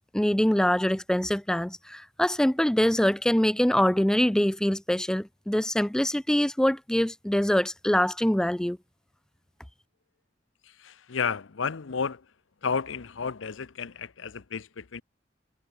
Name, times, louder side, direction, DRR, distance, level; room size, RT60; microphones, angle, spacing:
voice 1, 0.1-8.8, equal, 5° left, 0.4 m, -24 dB
voice 2, 10.8-12.2 12.6-15.0, left 5 dB, 85° left, 0.7 m, -32 dB
head